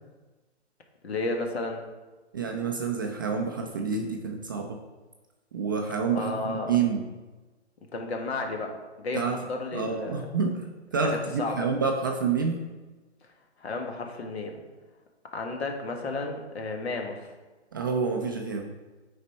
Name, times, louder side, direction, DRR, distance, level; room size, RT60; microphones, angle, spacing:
voice 1, 1.0-1.9 6.2-6.7 7.9-10.3 11.0-11.7 13.6-14.6 15.3-17.3, left 3 dB, 65° left, 3 dB, 1.7 m, -33 dB
voice 2, 2.3-4.8 5.5-7.1 9.1-9.4 9.7-12.6 17.7-18.7, right 5 dB, 20° right, 2 dB, 0.3 m, -28 dB
9.4 x 4.2 x 4.4 m, 1.2 s
hypercardioid pair, 135°, 34 cm